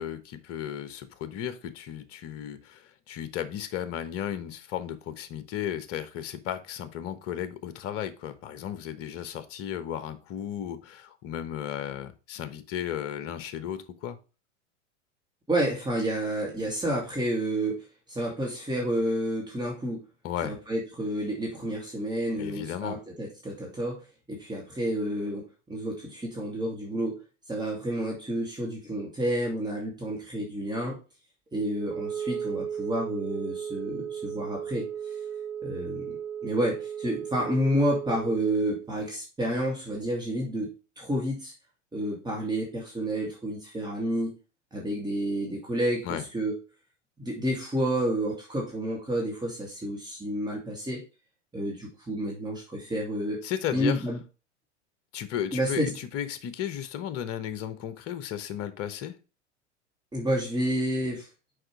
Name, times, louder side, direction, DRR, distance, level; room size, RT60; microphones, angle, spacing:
voice 1, 0.0-14.2 20.2-20.6 22.4-23.0 46.0-46.2 53.4-54.0 55.1-59.1, left 10 dB, 40° left, 11 dB, 1.1 m, -34 dB
voice 2, 15.5-20.0 20.4-27.2 27.5-31.0 31.5-35.1 35.6-36.2 36.4-40.7 41.0-41.5 41.9-44.3 44.7-46.5 47.2-51.0 51.5-53.4 53.7-54.2 55.5-55.9 60.1-61.3, right 1 dB, 10° right, -2 dB, 2.4 m, -30 dB
Wind instrument woodwind instrument, 31.7-38.8, right 8 dB, 45° right, 1.8 m, -35 dB
6.4 x 5.1 x 4.7 m, 0.32 s
figure-of-eight pair, 90°, 36 cm